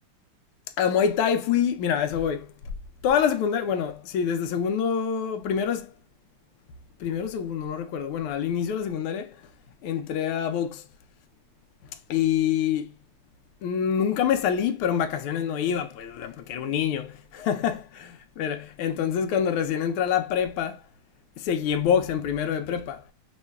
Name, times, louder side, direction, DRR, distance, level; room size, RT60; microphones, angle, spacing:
voice 1, 0.8-2.5 3.0-5.9 7.0-9.4 9.8-10.8 12.1-12.9 13.6-20.8 21.4-23.0, left 8 dB, 80° left, 1.4 m, -26 dB
5.5 x 3.1 x 2.2 m
omnidirectional pair, 2.4 m